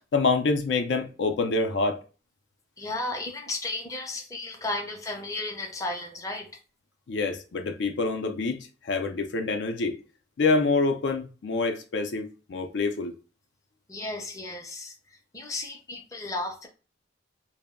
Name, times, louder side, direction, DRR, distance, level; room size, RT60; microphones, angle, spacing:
voice 1, 0.1-2.0 7.1-10.0 10.4-13.1, left 3 dB, 75° left, 0.4 m, -26 dB
voice 2, 2.8-6.5 13.9-14.9 15.3-16.7, left 2 dB, 15° left, 0.5 m, -34 dB
2.2 x 2.0 x 3.5 m
head